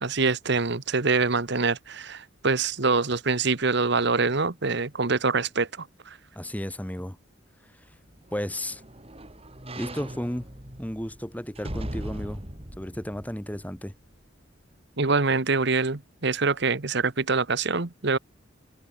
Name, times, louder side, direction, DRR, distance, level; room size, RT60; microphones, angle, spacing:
voice 1, 0.0-6.2 15.0-18.2, right 4 dB, 60° right, 1.3 m, -25 dB
voice 2, 6.3-7.2 8.3-8.8 9.8-10.5 10.8-12.4 12.8-13.9, equal, 10° left, 3.0 m, -33 dB
sound 1, 7.9-14.3 14.7-14.8, right 1 dB, 30° right, 4.0 m, -40 dB
head